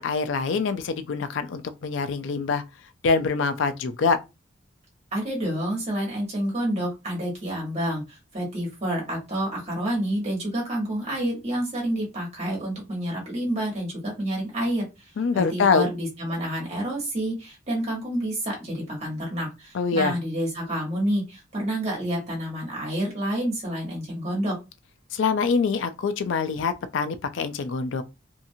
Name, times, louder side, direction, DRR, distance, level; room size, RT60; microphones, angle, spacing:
voice 1, 0.0-2.6 3.0-4.2 15.2-15.9 19.7-20.1 25.1-28.0, left 5 dB, 75° left, 0.4 m, -24 dB
voice 2, 5.1-24.6, right 1 dB, 35° right, 1.3 m, -29 dB
2.7 x 2.4 x 2.7 m
head